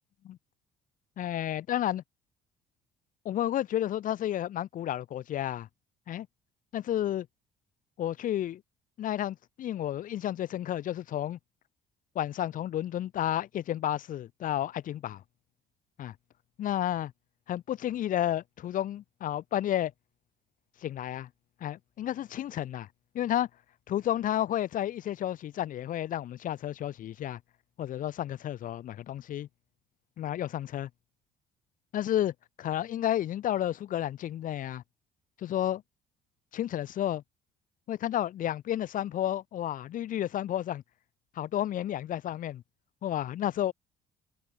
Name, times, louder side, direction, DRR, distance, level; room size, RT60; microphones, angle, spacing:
voice 1, 1.2-2.0 3.2-5.7 6.1-6.3 6.7-7.3 8.0-8.6 9.0-11.4 12.1-15.2 16.0-16.1 16.6-17.1 17.5-19.9 20.8-21.3 21.6-22.9 23.1-23.5 23.9-27.4 27.8-29.5 30.2-30.9 31.9-34.8 35.4-35.8 36.5-37.2 37.9-40.8 41.4-42.6 43.0-43.7, left 12 dB, 55° left, 0.7 m, -31 dB
open air
cardioid pair, 110°, 17 cm